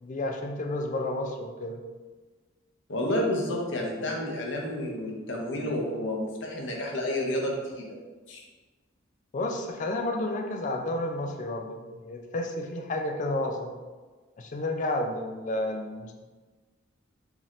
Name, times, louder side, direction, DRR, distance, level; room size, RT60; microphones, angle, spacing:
voice 1, 0.0-1.8 9.3-13.7 14.4-16.1, left 1 dB, 40° left, 3 dB, 0.4 m, -31 dB
voice 2, 2.9-7.8 8.3-8.4, left 1 dB, 65° left, -1 dB, 0.8 m, -30 dB
3.9 x 2.8 x 3.1 m, 1.3 s
head